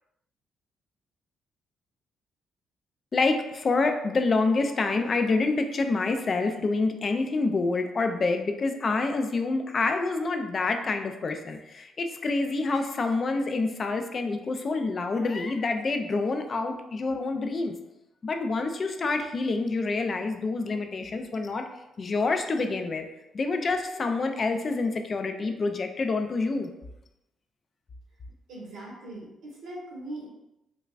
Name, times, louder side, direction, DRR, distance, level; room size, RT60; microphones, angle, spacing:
voice 1, 3.1-17.8 18.2-21.7 22.0-23.1 23.3-26.7, left 3 dB, 40° left, 6 dB, 0.4 m, -27 dB
voice 2, 28.5-30.3, right 1 dB, 75° right, -4 dB, 1.4 m, -40 dB
5.2 x 2.2 x 2.4 m, 0.91 s
cardioid pair, 90°, 0 cm